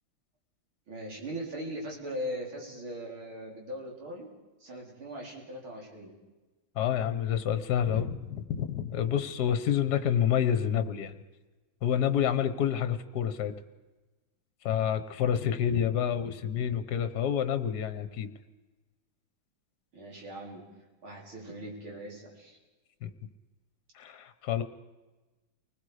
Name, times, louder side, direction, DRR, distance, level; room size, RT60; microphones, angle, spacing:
voice 1, 0.9-4.3 4.6-6.1 19.9-20.6 21.0-22.6, equal, 80° right, -2 dB, 4.8 m, -40 dB
voice 2, 6.7-11.2 11.8-13.5 14.6-18.3 23.0-23.1 23.9-24.6, left 9 dB, 55° left, 11 dB, 1.5 m, -28 dB
29.5 x 20.5 x 5.0 m, 1.2 s
omnidirectional pair, 2.2 m